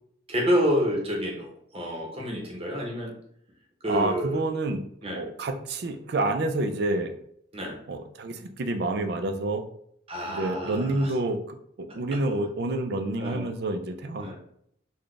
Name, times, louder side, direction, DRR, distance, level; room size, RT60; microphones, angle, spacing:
voice 1, 0.3-1.5 1.7-3.1 3.8-4.4 5.0-5.2 7.5-7.8 10.1-11.1 13.2-13.5 14.2-14.4, equal, 30° right, -1 dB, 0.9 m, -28 dB
voice 2, 3.9-7.1 7.9-9.6 10.3-14.4, right 2 dB, 55° right, 7 dB, 0.4 m, -28 dB
4.0 x 2.3 x 3.2 m, 0.70 s
head